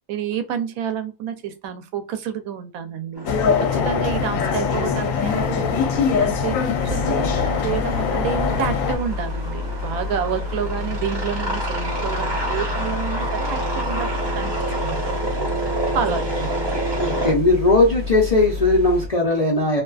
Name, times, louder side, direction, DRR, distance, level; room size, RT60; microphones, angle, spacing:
voice 1, 0.1-3.3 3.7-6.6 6.8-15.5 15.9-16.5, right 8 dB, 85° right, 1.0 m, -29 dB
sound 1, 3.2-17.3, right 2 dB, 20° right, 0.8 m, -30 dB
sound 2, 3.3-9.0, left 6 dB, 75° left, 1.0 m, -22 dB
sound 3, 6.7-19.1, left 3 dB, 55° right, 1.1 m, -29 dB
voice 2, 17.0-19.8, left 2 dB, 45° left, 0.5 m, -18 dB
2.6 x 2.3 x 2.3 m
omnidirectional pair, 1.4 m